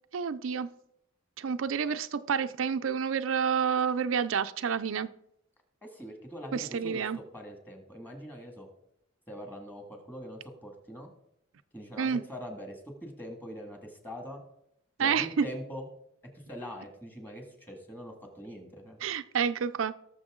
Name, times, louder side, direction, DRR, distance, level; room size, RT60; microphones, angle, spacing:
voice 1, 0.1-0.7 1.4-5.1 6.5-7.2 12.0-12.2 15.0-15.5 19.0-20.0, right 6 dB, 80° right, 10 dB, 0.5 m, -29 dB
voice 2, 5.8-8.7 9.3-11.1 11.7-14.4 15.0-15.9 16.3-19.0, equal, 10° left, 3 dB, 2.0 m, -43 dB
18.5 x 6.8 x 3.7 m, 0.75 s
head